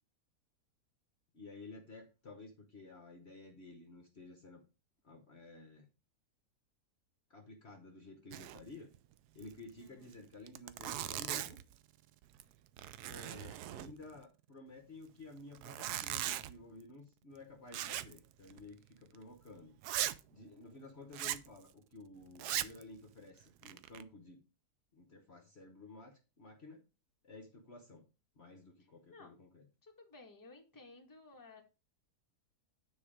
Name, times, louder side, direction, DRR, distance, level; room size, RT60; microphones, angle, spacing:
voice 1, 1.3-4.6 5.0-5.9 7.3-8.9 9.3-11.6 13.1-19.8 20.3-24.4 24.9-26.8 27.2-28.1 28.3-29.7, left 2 dB, 45° left, 5 dB, 1.2 m, -53 dB
Zipper (clothing), 8.3-8.7 8.9-9.0 9.4-9.5 10.1-10.2 10.5-11.7 12.2-12.5 12.8-14.2 15.5-16.5 17.7-18.2 18.5-18.6 19.1-19.2 19.8-20.2 21.1-21.5 22.3-22.8 23.4-24.0, right 12 dB, 85° right, 1.1 m, -39 dB
voice 2, 9.8-10.1 29.1-29.3 29.8-31.6, left 3 dB, 15° left, 2 dB, 1.4 m, -56 dB
9.4 x 4.6 x 4.9 m, 0.31 s
omnidirectional pair, 1.6 m